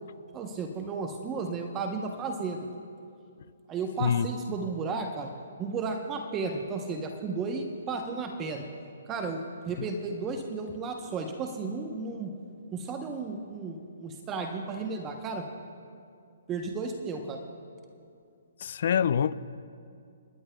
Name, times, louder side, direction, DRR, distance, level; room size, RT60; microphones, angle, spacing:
voice 1, 0.3-2.6 3.7-5.3 5.6-8.7 9.1-9.4 9.7-12.3 12.7-15.4 16.5-17.4, right 4 dB, 20° right, 4 dB, 0.8 m, -33 dB
voice 2, 18.6-19.3, left 8 dB, 55° left, 17 dB, 0.4 m, -25 dB
29.5 x 11.0 x 2.3 m, 2.4 s
hypercardioid pair, 150°, 0 cm